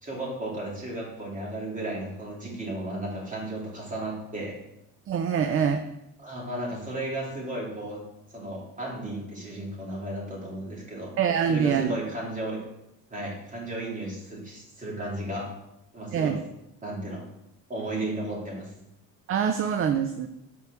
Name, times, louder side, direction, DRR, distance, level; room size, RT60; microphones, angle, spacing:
voice 1, 0.0-4.6 6.2-8.0 8.3-11.1 11.5-12.6 13.1-15.5 15.9-16.3 16.8-17.2 17.7-18.7, right 1 dB, 20° right, -3 dB, 2.8 m, -34 dB
voice 2, 5.1-5.8 11.2-12.0 16.1-16.4 19.3-20.3, right 7 dB, 35° right, 8 dB, 0.5 m, -25 dB
5.5 x 4.7 x 6.2 m, 0.84 s
cardioid pair, 110°, 37 cm